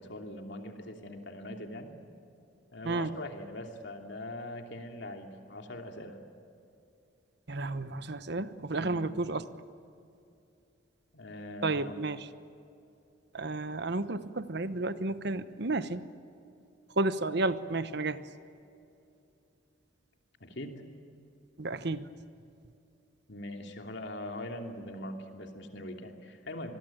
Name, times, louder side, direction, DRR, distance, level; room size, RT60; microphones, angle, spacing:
voice 1, 0.0-1.9 2.7-6.2 8.8-9.1 11.1-11.9 20.4-20.8 23.3-26.8, left 1 dB, 65° left, 4 dB, 2.9 m, -42 dB
voice 2, 7.5-9.4 11.6-12.2 13.3-16.0 17.0-18.2 21.6-22.1, right 2 dB, 60° right, 13 dB, 1.0 m, -32 dB
26.5 x 21.5 x 9.0 m, 2.7 s
head